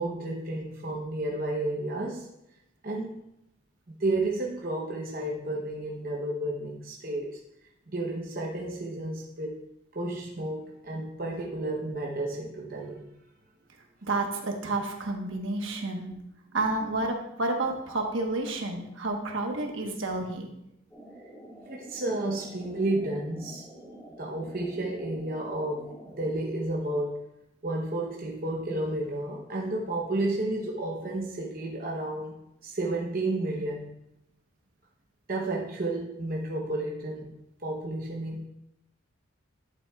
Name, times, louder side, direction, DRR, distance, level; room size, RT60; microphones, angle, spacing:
voice 1, 0.0-2.3 2.8-3.2 4.0-7.4 7.9-9.6 9.9-13.1 21.7-23.7 24.2-27.3 27.6-32.3 32.6-33.9 35.3-37.3 37.6-38.5, right 2 dB, 45° right, -2 dB, 0.9 m, -31 dB
voice 2, 14.0-16.2 16.5-20.5, right 2 dB, 65° right, 2 dB, 1.2 m, -30 dB
sound 1, 20.9-26.3, right 1 dB, 5° left, 1.1 m, -48 dB
12.0 x 7.1 x 2.4 m, 0.84 s
head